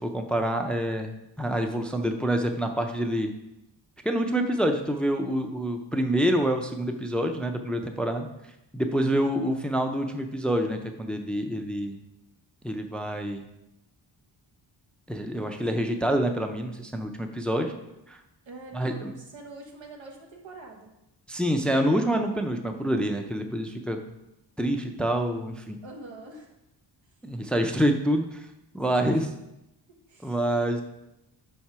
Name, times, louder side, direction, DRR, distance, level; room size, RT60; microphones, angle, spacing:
voice 1, 0.0-3.3 4.0-8.3 8.7-12.0 12.6-13.4 15.1-17.7 18.1-18.2 18.7-19.1 21.3-24.0 24.6-25.8 27.2-28.5 28.7-29.3 30.2-30.8, equal, ahead, 5 dB, 0.4 m, -27 dB
voice 2, 17.5-17.8 18.5-20.9 25.8-26.5 28.9-29.1 30.1-30.4, right 3 dB, 90° right, 1 dB, 1.3 m, -45 dB
5.8 x 4.3 x 4.7 m, 0.89 s
cardioid pair, 100°, 44 cm